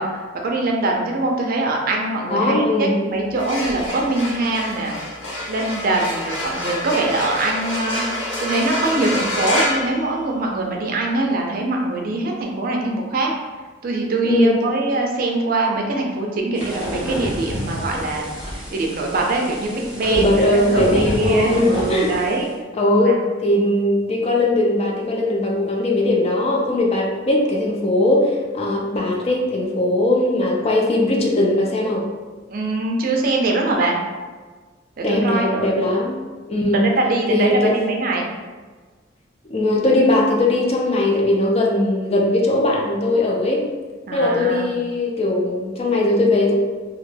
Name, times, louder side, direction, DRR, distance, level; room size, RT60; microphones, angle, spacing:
voice 1, 0.0-5.0 5.5-8.0 8.4-13.3 13.8-18.3 18.5-22.5 23.0-23.2 32.5-34.0 35.0-35.7 36.8-38.2 44.0-44.7, right 2 dB, 50° right, 0 dB, 0.4 m, -22 dB
voice 2, 2.3-3.0 14.2-14.6 19.7-22.1 22.7-32.1 35.0-36.2 36.5-36.9 37.3-37.8 39.4-43.7 44.1-46.5, left 2 dB, 35° left, -1 dB, 0.4 m, -19 dB
sound 1, 3.2-10.7, left 1 dB, 75° left, 0.7 m, -27 dB
sound 2, 16.6-22.5, equal, 5° right, 1.1 m, -30 dB
2.3 x 2.2 x 3.2 m, 1.4 s
head